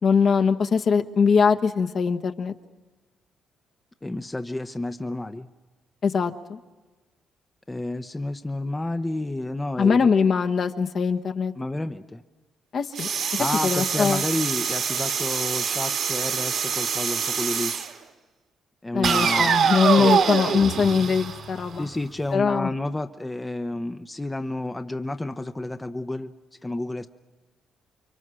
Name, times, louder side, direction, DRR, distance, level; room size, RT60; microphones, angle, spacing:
voice 1, 0.0-2.5 6.0-6.6 9.8-11.5 12.7-13.1 13.6-14.2 18.9-21.9 22.3-22.7, left 5 dB, 55° left, 4 dB, 1.2 m, -22 dB
voice 2, 4.0-5.5 7.7-10.1 11.6-12.2 13.4-17.7 18.8-20.1 21.7-26.3 26.6-27.1, left 2 dB, 15° left, 8 dB, 0.8 m, -30 dB
sound 1, 13.0-17.9 19.0-22.0, right 6 dB, 65° right, 2.1 m, -25 dB
29.5 x 23.5 x 6.3 m, 1.2 s
cardioid pair, 90°, 0 cm